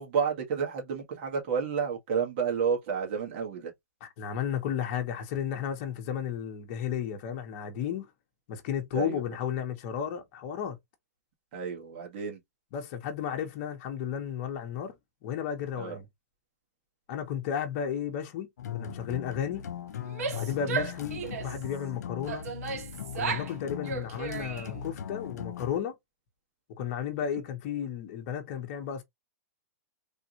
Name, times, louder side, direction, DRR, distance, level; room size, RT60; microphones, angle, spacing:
voice 1, 0.0-3.7 8.9-9.2 11.5-12.4 15.8-16.0 20.6-20.8, right 6 dB, 40° right, 1.5 m, -30 dB
voice 2, 4.0-8.1 8.5-10.8 12.7-14.9 15.2-16.1 17.1-18.5 18.7-19.6 20.3-22.5 23.1-26.0 26.8-29.0, left 8 dB, 40° left, 1.1 m, -33 dB
sound 1, 18.6-25.8, left 8 dB, 80° left, 0.6 m, -39 dB
Female speech woman speaking / Yell, 20.0-21.6 22.3-23.5 23.8-24.8, right 5 dB, 65° right, 1.2 m, -35 dB
3.5 x 2.5 x 2.9 m
hypercardioid pair, 160°, 9 cm